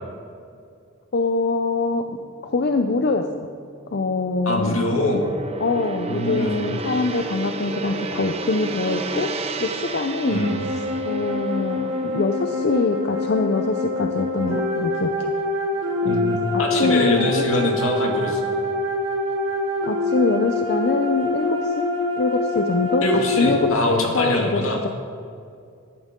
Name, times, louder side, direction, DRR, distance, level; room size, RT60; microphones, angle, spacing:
voice 1, 1.1-2.1 2.4-3.2 3.9-4.8 5.1-5.2 5.6-9.3 9.6-10.5 10.7-15.3 16.0-17.7 19.8-21.9 22.2-23.1 23.4-24.9, left 3 dB, 50° left, 6 dB, 0.5 m, -24 dB
Gong, 2.2-14.7 15.0-15.3, right 3 dB, 30° right, 0.7 m, -33 dB
voice 2, 4.5-5.2 6.1-6.5 10.3-10.6 16.1-18.4 23.0-24.8, left 1 dB, 75° left, 1 dB, 2.0 m, -23 dB
sound 1, 10.2-23.7, left 2 dB, 60° right, 2.4 m, -25 dB
14.5 x 11.0 x 3.7 m, 2.4 s
head